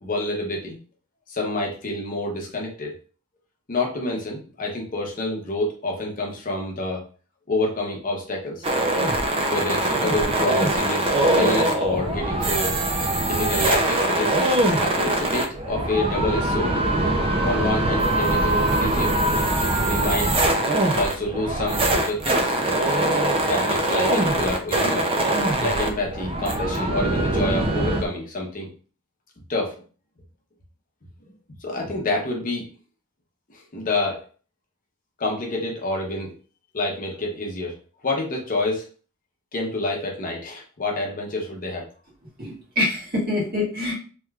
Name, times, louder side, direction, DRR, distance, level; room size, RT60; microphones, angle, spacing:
voice 1, 0.0-0.8 1.3-2.9 3.7-7.0 7.5-8.7 9.5-12.8 13.2-14.4 14.8-16.7 17.4-19.2 19.9-20.3 20.9-22.5 23.4-25.1 25.6-28.7 29.5-29.8 31.2-31.3 31.6-32.6 33.5-34.2 35.2-36.3 36.7-37.8 38.0-38.9 39.5-41.9, left 2 dB, 40° left, 0 dB, 0.8 m, -28 dB
sound 1, 8.6-28.0, right 1 dB, 25° right, 0.4 m, -22 dB
voice 2, 42.4-44.0, left 2 dB, 45° right, -6 dB, 1.7 m, -25 dB
3.3 x 2.9 x 2.3 m, 0.39 s
head